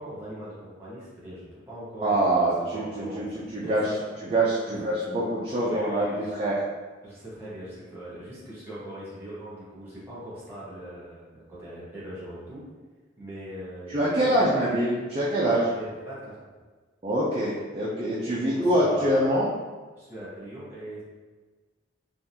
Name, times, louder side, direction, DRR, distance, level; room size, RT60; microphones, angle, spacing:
voice 1, 0.0-4.1 4.7-4.8 5.5-6.3 7.0-12.6 13.2-14.7 15.4-16.4 18.2-19.3 20.0-21.0, right 1 dB, 10° right, -9 dB, 1.2 m, -40 dB
voice 2, 2.0-3.9 4.3-6.6 13.9-15.6 17.0-19.5, right 1 dB, 30° right, -7 dB, 0.4 m, -25 dB
3.6 x 2.5 x 2.7 m, 1.4 s
head